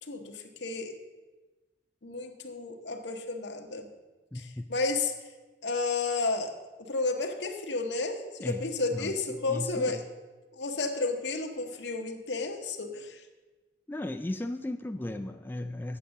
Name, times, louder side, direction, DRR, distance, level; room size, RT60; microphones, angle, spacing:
voice 1, 0.0-0.9 2.0-3.9 4.3-5.1 5.6-6.5 6.9-10.0 10.5-13.2, left 3 dB, 80° left, 5 dB, 1.0 m, -32 dB
voice 2, 4.3-4.7 8.4-8.6 8.9-10.0 13.9-16.0, left 1 dB, 10° left, 6 dB, 0.3 m, -36 dB
8.6 x 7.1 x 6.4 m, 1.2 s
head